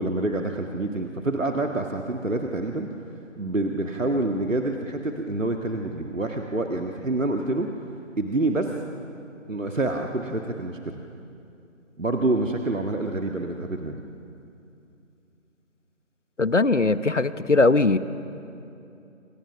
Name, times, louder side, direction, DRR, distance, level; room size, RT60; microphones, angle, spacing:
voice 1, 0.0-2.9 3.4-7.7 8.2-8.7 9.5-11.0 12.0-14.0, right 2 dB, 70° right, 3 dB, 1.9 m, -27 dB
voice 2, 16.4-18.0, left 3 dB, 65° left, 14 dB, 1.2 m, -20 dB
28.0 x 27.0 x 6.1 m, 2.7 s
figure-of-eight pair, 170°, 39 cm